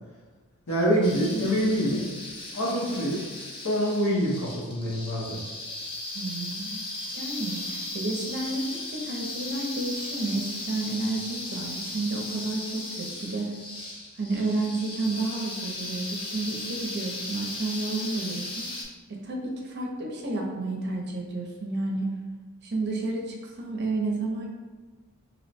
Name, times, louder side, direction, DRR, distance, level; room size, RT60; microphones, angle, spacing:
voice 1, 0.7-2.0 2.5-3.2 3.6-5.4, equal, 70° left, -4 dB, 0.9 m, -25 dB
sound 1, 1.0-18.8, left 2 dB, 25° left, 0.5 m, -37 dB
voice 2, 6.1-6.8 7.1-13.5 14.2-18.7 19.1-22.1 22.6-24.5, right 2 dB, 50° right, 0 dB, 0.6 m, -31 dB
2.8 x 2.1 x 4.1 m, 1.4 s
head